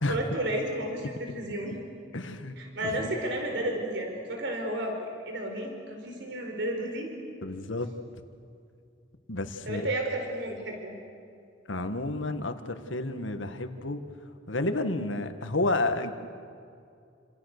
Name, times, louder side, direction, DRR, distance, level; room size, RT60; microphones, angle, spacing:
voice 1, 0.1-1.8 2.6-5.0 5.2-7.1 9.7-11.0, right 1 dB, 65° right, 2 dB, 4.4 m, -32 dB
voice 2, 2.1-2.6 2.8-3.0 7.4-7.9 9.3-9.8 11.7-14.0 14.5-16.1, left 2 dB, 80° left, 8 dB, 1.8 m, -30 dB
28.5 x 27.0 x 6.7 m, 2.4 s
head